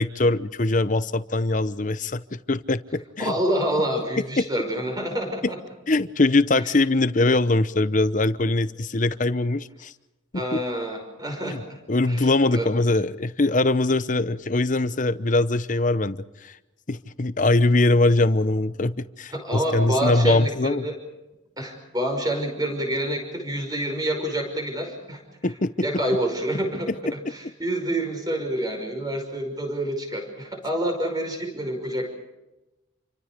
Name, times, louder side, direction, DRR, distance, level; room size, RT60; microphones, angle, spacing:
voice 1, 0.0-3.3 5.4-5.5 5.9-9.9 10.5-10.6 11.4-11.6 11.9-16.5 16.9-20.9 25.4-25.7, left 2 dB, 40° left, 14 dB, 0.9 m, -22 dB
voice 2, 3.2-5.6 10.3-11.8 12.1-12.7 19.3-21.0 21.6-25.2 25.8-32.1, right 1 dB, 20° right, 3 dB, 5.7 m, -27 dB
29.0 x 24.5 x 5.2 m, 1.0 s
head